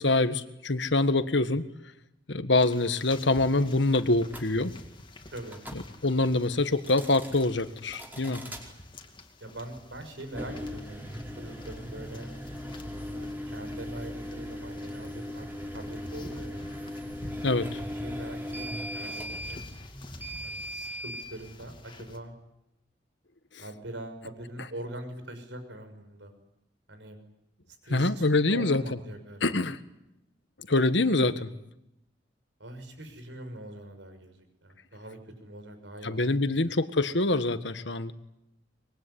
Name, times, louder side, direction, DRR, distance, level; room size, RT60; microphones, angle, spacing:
voice 1, 0.0-1.6 2.3-4.7 6.0-8.4 17.4-17.8 27.9-28.8 29.4-29.8 30.7-31.5 36.0-38.1, left 2 dB, 75° left, 12 dB, 1.6 m, -25 dB
sound 1, 2.6-22.2, left 1 dB, 25° left, 2.5 m, -49 dB
sound 2, 4.3-4.5 5.5-5.8 6.7-7.4 7.9-8.6 10.2-21.3, equal, 10° right, 5.1 m, -38 dB
voice 2, 5.3-5.6 8.2-8.5 9.4-12.3 12.9-16.6 18.0-19.6 20.4-22.3 23.6-26.3 26.9-27.2 27.8-29.4 32.6-34.4 34.6-36.8, right 1 dB, 80° right, 7 dB, 6.3 m, -43 dB
24.5 x 22.5 x 10.0 m, 0.85 s
head